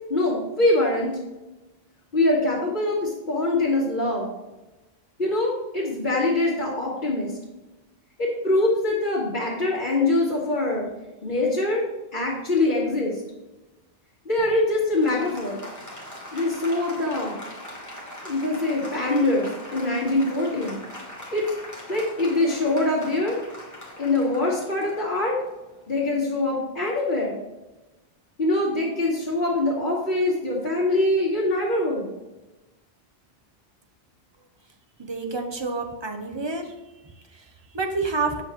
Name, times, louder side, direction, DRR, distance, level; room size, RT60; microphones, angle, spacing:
voice 1, 0.1-1.2 2.1-4.3 5.2-7.3 8.2-10.9 11.2-11.8 12.1-13.2 14.2-15.6 16.3-17.3 18.2-20.8 21.3-21.5 21.9-23.4 24.0-25.4 25.9-27.3 28.4-32.1, left 2 dB, 55° left, -10 dB, 1.8 m, -23 dB
Applause, 14.4-26.3, left 1 dB, 15° left, 1.3 m, -41 dB
voice 2, 35.0-36.7 37.0-38.4, right 3 dB, 30° right, 5 dB, 0.7 m, -29 dB
7.6 x 6.2 x 3.0 m, 1.1 s
omnidirectional pair, 1.1 m